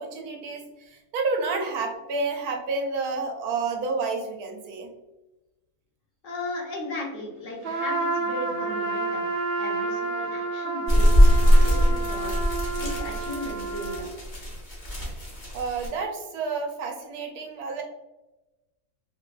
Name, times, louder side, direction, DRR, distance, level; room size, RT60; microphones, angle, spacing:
voice 1, 0.0-4.9 15.5-17.8, right 4 dB, 80° right, 2 dB, 1.1 m, -30 dB
voice 2, 6.2-9.3 9.6-14.1, left 1 dB, 60° left, -2 dB, 1.2 m, -36 dB
Trumpet, 7.6-14.1, right 3 dB, 55° right, 0.7 m, -30 dB
sound 1, 10.9-15.9, equal, 40° left, 0.9 m, -21 dB
3.5 x 2.5 x 2.2 m, 1.0 s
omnidirectional pair, 1.6 m